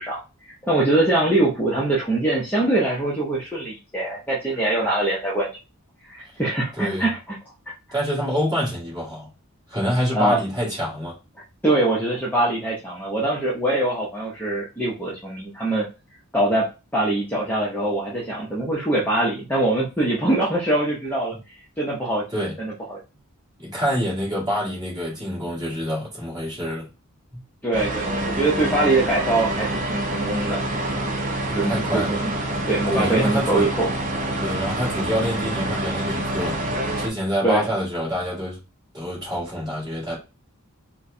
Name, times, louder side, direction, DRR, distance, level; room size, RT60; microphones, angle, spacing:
voice 1, 0.0-5.5 6.1-7.2 10.1-10.4 11.6-15.9 16.3-21.3 21.8-23.0 27.6-30.7 31.5-32.3 32.7-33.9 34.2-34.4 37.4-37.7, right 2 dB, 10° left, 0.7 m, -23 dB
voice 2, 6.8-7.1 7.9-9.3 9.7-11.2 22.3-22.5 23.6-26.9 27.3-27.4 31.4-32.2 32.9-33.7 34.4-38.6 38.9-40.2, equal, 20° right, 1.7 m, -26 dB
sound 1, 27.7-37.1, right 1 dB, 35° right, 0.6 m, -27 dB
4.4 x 2.2 x 2.6 m
head